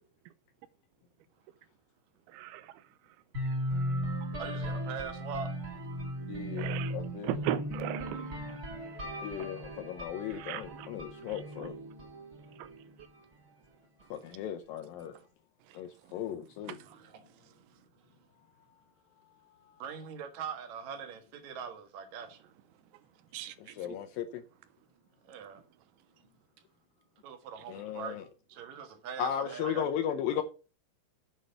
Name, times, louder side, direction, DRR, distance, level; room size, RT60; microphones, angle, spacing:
voice 1, 2.3-2.7 6.5-6.9 7.2-8.4 10.4-10.9 11.6-11.7 12.6-12.7 23.3-23.5, right 13 dB, 80° right, 2.4 m, -36 dB
sound 1, 3.3-13.2, equal, 35° right, 1.5 m, -37 dB
voice 2, 4.4-5.5 16.6-17.8 19.8-22.5 25.2-25.6 27.2-28.2 28.5-29.8, right 7 dB, 60° right, 2.2 m, -42 dB
voice 3, 6.3-7.3 9.2-11.7 14.1-15.1 15.7-16.8 23.6-24.4 27.7-28.3 29.2-30.4, left 9 dB, 80° left, 2.1 m, -36 dB
8.1 x 5.2 x 6.5 m
omnidirectional pair, 4.7 m